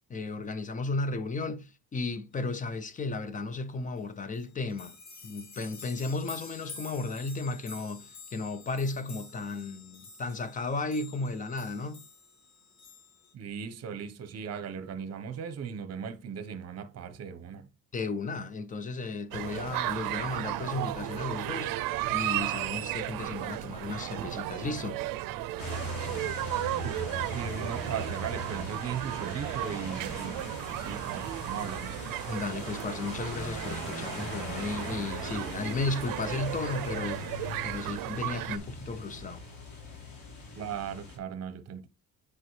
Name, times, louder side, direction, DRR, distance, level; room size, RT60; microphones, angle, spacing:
voice 1, 0.1-5.0 5.2-12.0 17.9-21.8 22.1-25.0 32.3-39.5, left 3 dB, 25° left, 0.6 m, -34 dB
sound 1, 4.0-4.1 4.3-13.3, left 4 dB, 55° left, 2.1 m, -49 dB
voice 2, 13.3-17.7 27.3-30.4 30.7-31.9 40.6-41.9, right 7 dB, 45° right, 1.0 m, -38 dB
sound 2, 19.3-38.6, right 15 dB, 80° right, 0.5 m, -35 dB
sound 3, 25.6-41.2, left 1 dB, 90° left, 3.8 m, -40 dB
9.0 x 4.8 x 3.2 m
cardioid pair, 145°, 34 cm